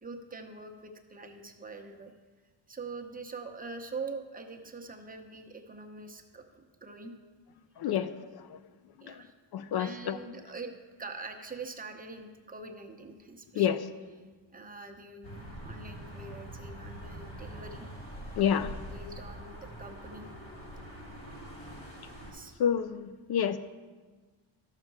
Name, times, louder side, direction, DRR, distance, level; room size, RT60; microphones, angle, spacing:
voice 1, 0.0-2.1 2.7-7.1 9.0-9.3 9.8-10.7 11.0-13.7 14.5-17.9 18.6-20.3 22.3-22.5, right 3 dB, 20° right, 3 dB, 0.8 m, -44 dB
voice 2, 7.8-8.6 9.1-9.2 9.5-10.2 13.6-13.8 18.4-18.7 22.6-23.6, left 9 dB, 60° left, 12 dB, 0.5 m, -29 dB
sound 1, 15.2-22.3, right 1 dB, 30° left, 2.8 m, -44 dB
13.0 x 6.6 x 4.7 m, 1.4 s
cardioid pair, 140°, 44 cm